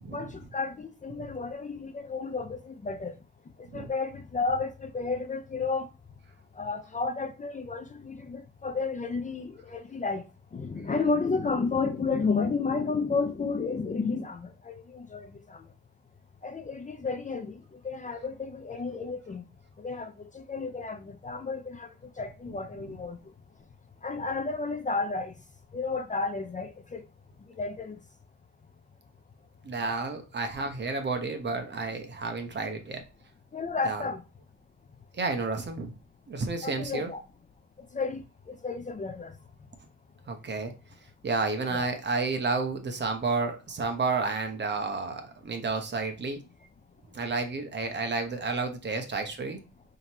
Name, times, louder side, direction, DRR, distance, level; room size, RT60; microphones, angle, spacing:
voice 1, 0.1-3.1 3.7-5.9 6.6-10.2 10.5-15.6 16.4-17.6 17.8-19.4 19.8-21.9 22.2-23.2 24.0-25.3 25.7-27.0 27.6-28.0 33.5-34.2 36.6-37.2 37.9-38.2 38.5-39.3 41.7-41.9, left 4 dB, 25° left, 0.6 m, -32 dB
voice 2, 29.6-33.0 33.8-34.0 35.1-35.9 36.3-37.1 40.3-40.7 41.2-46.4 47.1-49.6, right 3 dB, 35° right, 1.0 m, -31 dB
5.1 x 2.9 x 2.9 m
cardioid pair, 90°, 30 cm